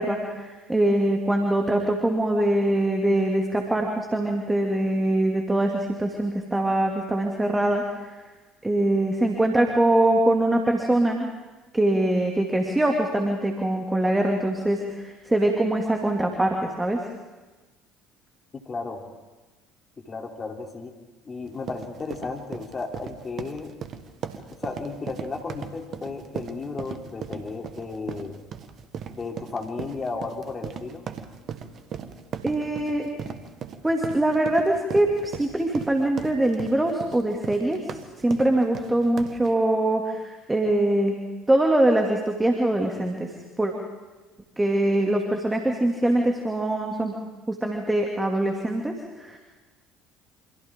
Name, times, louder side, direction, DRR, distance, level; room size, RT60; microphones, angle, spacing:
voice 1, 0.0-8.1 8.6-11.3 11.7-17.0 32.4-33.1 33.8-41.2 41.5-43.7 44.6-47.1 47.5-49.4, right 1 dB, 15° right, 2 dB, 2.5 m, -23 dB
voice 2, 18.5-19.0 20.0-20.9 21.2-23.7 24.6-28.4 29.1-31.0, left 4 dB, 30° left, 2 dB, 3.3 m, -34 dB
sound 1, 21.4-39.5, right 7 dB, 50° right, 1.5 m, -37 dB
28.5 x 26.0 x 3.8 m, 1.2 s
hypercardioid pair, 60°, 0 cm